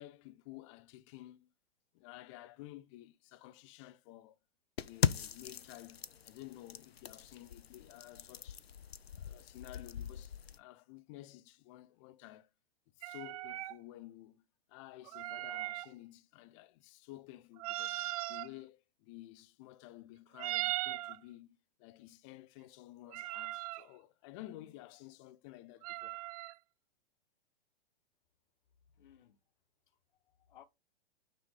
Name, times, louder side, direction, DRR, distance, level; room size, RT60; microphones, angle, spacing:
voice 1, 0.0-1.5 1.9-4.4 4.8-8.7 9.1-12.5 13.0-14.4 14.7-26.2, left 16 dB, 30° left, 0.5 m, -53 dB
sound 1, 4.8-10.6, left 8 dB, 85° left, 0.6 m, -39 dB
sound 2, 13.0-13.8 15.1-15.9 17.6-18.5 20.3-21.2 23.1-23.8 25.8-26.5, right 16 dB, 40° right, 0.4 m, -39 dB
voice 2, 29.0-29.4 29.9-30.6, left 10 dB, 55° left, 1.2 m, -61 dB
6.0 x 5.5 x 3.8 m
figure-of-eight pair, 110°, 30 cm